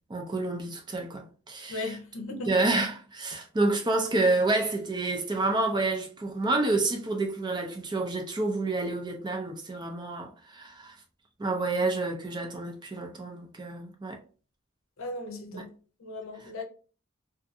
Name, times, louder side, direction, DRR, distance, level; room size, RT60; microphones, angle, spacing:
voice 1, 0.1-2.0 2.5-10.9 11.4-14.2 15.5-15.6, right 2 dB, 20° right, 0.4 m, -29 dB
voice 2, 1.7-2.5 15.0-15.7 16.0-16.6, left 2 dB, 75° left, 0.7 m, -36 dB
2.5 x 2.4 x 2.6 m
head